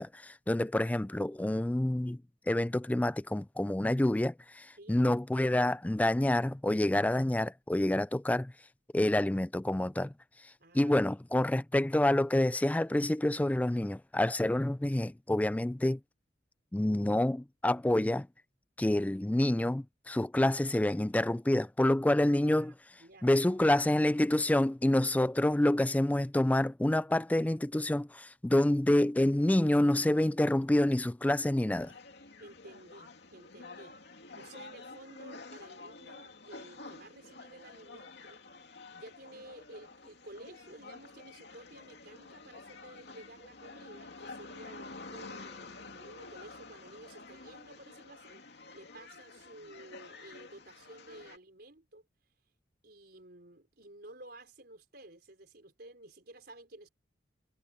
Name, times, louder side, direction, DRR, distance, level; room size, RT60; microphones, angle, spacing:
voice 1, 0.0-2.2 2.5-8.5 8.9-10.1 10.7-16.0 16.7-18.3 18.8-22.7 23.2-31.9, left 1 dB, 10° left, 0.3 m, -27 dB
voice 2, 4.8-5.1 10.6-11.0 18.8-19.1 22.6-23.3 32.4-34.0 34.4-38.4 38.9-48.4 48.7-52.0 52.8-56.9, right 1 dB, 60° right, 4.8 m, -53 dB
sound 1, 31.8-51.4, left 3 dB, 65° left, 2.8 m, -50 dB
head